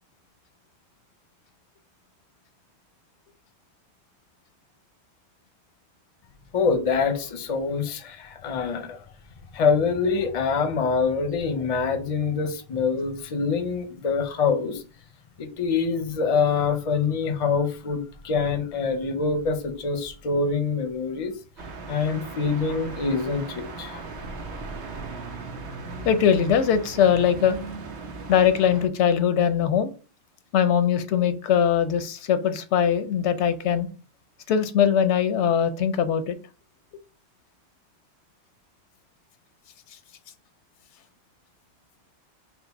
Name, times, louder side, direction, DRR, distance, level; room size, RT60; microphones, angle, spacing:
voice 1, 6.5-9.0 9.5-14.8 15.4-21.3 21.9-24.0, left 5 dB, 40° left, 0.5 m, -25 dB
sound 1, 21.6-28.9, right 3 dB, 75° right, 1.0 m, -38 dB
voice 2, 26.1-27.6 28.3-29.9 30.5-33.9 34.5-36.4, left 8 dB, 90° left, 0.9 m, -21 dB
4.5 x 2.0 x 4.0 m
omnidirectional pair, 1.1 m